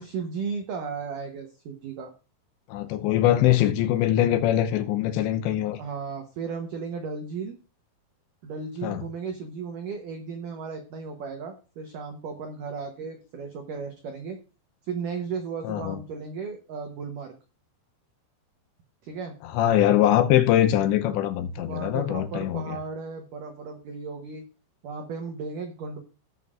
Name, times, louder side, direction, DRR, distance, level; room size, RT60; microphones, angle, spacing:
voice 1, 0.0-2.1 5.8-7.6 8.4-14.4 14.9-17.4 19.0-19.4 21.5-24.4 24.8-26.0, right 5 dB, 80° right, 1.8 m, -35 dB
voice 2, 2.7-5.8 8.8-9.0 15.6-16.0 19.4-22.8, left 12 dB, 80° left, 2.9 m, -22 dB
19.5 x 6.9 x 2.5 m
omnidirectional pair, 5.3 m